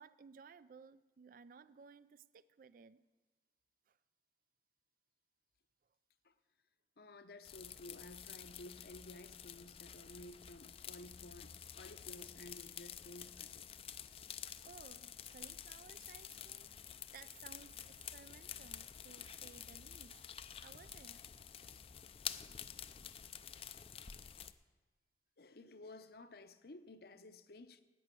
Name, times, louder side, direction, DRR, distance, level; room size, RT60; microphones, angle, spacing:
voice 1, 0.0-3.0 3.9-4.0 14.6-21.3 22.4-22.5 23.8-24.0, right 6 dB, 50° right, 0.3 m, -59 dB
voice 2, 7.0-13.6 25.4-27.8, left 2 dB, 60° left, 0.7 m, -54 dB
sound 1, 7.4-24.5, left 9 dB, 35° left, 0.4 m, -50 dB
11.0 x 9.3 x 8.2 m
head